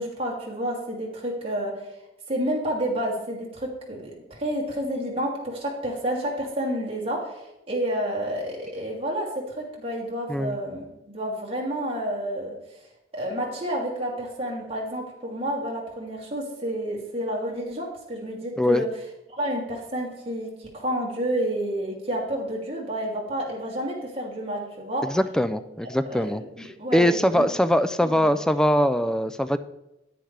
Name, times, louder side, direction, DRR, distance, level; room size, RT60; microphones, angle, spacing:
voice 1, 0.0-1.7 2.3-12.6 13.1-18.9 19.4-25.0 26.1-27.5 28.0-28.3, right 1 dB, 30° right, -3 dB, 2.6 m, -30 dB
voice 2, 25.0-29.6, equal, 5° left, 12 dB, 0.3 m, -22 dB
10.0 x 9.4 x 3.3 m, 0.92 s
head